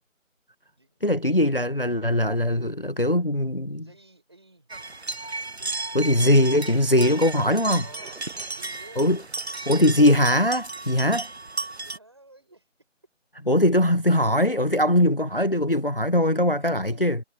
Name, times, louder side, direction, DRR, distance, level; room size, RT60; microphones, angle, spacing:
voice 1, 1.0-3.8 5.9-7.8 9.0-9.2 9.7-11.3 13.5-17.2, left 1 dB, 45° left, 0.8 m, -21 dB
voice 2, 3.7-4.7 5.6-6.0 7.8-9.1 11.5-12.7 16.4-17.2, right 2 dB, 20° right, 5.9 m, -53 dB
sound 1, 4.7-12.0, right 3 dB, 55° right, 0.8 m, -34 dB
figure-of-eight pair, 180°, 39 cm